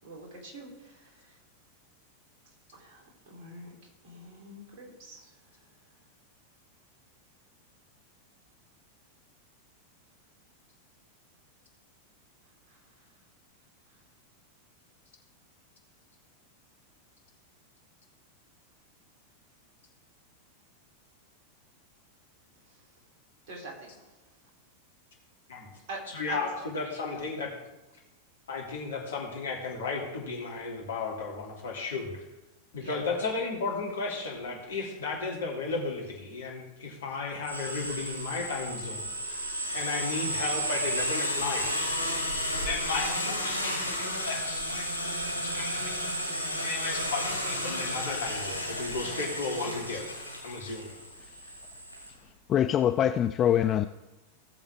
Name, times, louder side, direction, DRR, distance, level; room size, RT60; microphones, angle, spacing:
voice 1, 0.0-1.4 2.7-5.4 12.7-12.8 22.7-22.8 23.5-24.2 25.9-26.0 26.3-26.5 26.7-27.3 32.8-33.0, right 2 dB, 45° right, -1 dB, 3.8 m, -45 dB
voice 2, 26.1-27.5 28.5-32.2 32.7-39.5 39.7-41.9 42.6-44.9 45.4-45.9 46.6-50.1 50.4-50.9, left 4 dB, 65° left, -1 dB, 2.9 m, -34 dB
sound 1, 37.4-52.1, equal, 90° right, 2.4 m, -32 dB
voice 3, 52.5-53.9, left 10 dB, 30° left, 11 dB, 0.4 m, -24 dB
17.5 x 7.1 x 3.6 m, 1.1 s
figure-of-eight pair, 90°, 0 cm